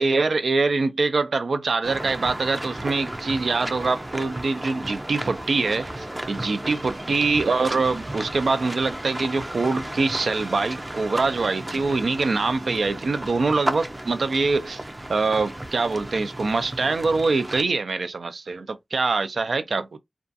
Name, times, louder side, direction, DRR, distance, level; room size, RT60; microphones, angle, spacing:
voice 1, 0.0-14.8 15.1-20.0, right 3 dB, 85° right, 0.3 m, -24 dB
sound 1, 1.8-17.6, right 1 dB, 25° right, 0.4 m, -34 dB
2.4 x 2.3 x 2.6 m
wide cardioid pair, 70°, 0 cm